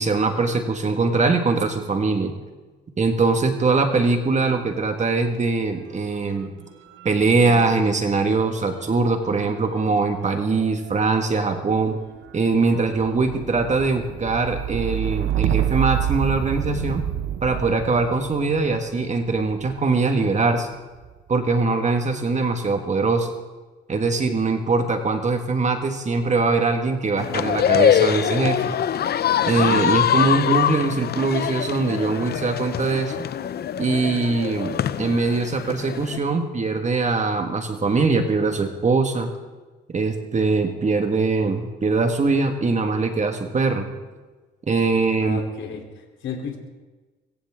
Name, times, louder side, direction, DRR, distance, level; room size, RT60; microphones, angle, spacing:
voice 1, 0.0-2.3 3.0-6.5 7.0-12.0 12.3-17.0 17.4-20.7 21.3-23.3 23.9-28.7 29.5-33.3 33.8-39.3 39.9-43.9 44.7-45.4, right 3 dB, 35° right, 5 dB, 1.9 m, -22 dB
sound 1, 3.3-4.7 4.9-20.0 20.7-21.3, right 11 dB, 80° right, 1.1 m, -30 dB
sound 2, 27.2-36.2, left 9 dB, 55° left, 0.6 m, -23 dB
voice 2, 45.2-46.6, left 6 dB, 70° left, 2 dB, 3.6 m, -34 dB
23.5 x 16.0 x 3.8 m, 1.3 s
cardioid pair, 90°, 20 cm